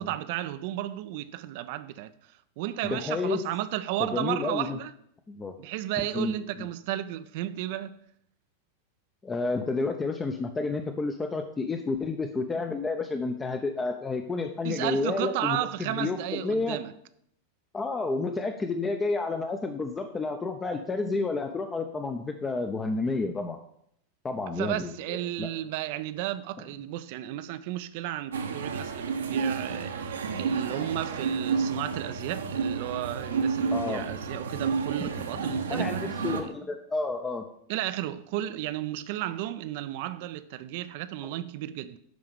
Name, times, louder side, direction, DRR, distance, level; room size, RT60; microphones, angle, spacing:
voice 1, 0.0-2.1 2.6-4.9 5.6-8.0 14.6-16.9 24.6-36.0 37.7-42.0, right 14 dB, 50° right, 0.6 m, -33 dB
voice 2, 2.8-3.5 4.0-4.8 5.3-5.6 6.1-6.7 9.2-16.8 17.7-23.6 24.2-25.5 33.7-34.2 35.0-35.4 35.7-37.4 41.2-41.3, left 3 dB, 15° left, 0.8 m, -30 dB
sound 1, 28.3-36.4, right 5 dB, 70° right, 1.1 m, -30 dB
11.5 x 4.8 x 7.0 m
figure-of-eight pair, 90°, 0 cm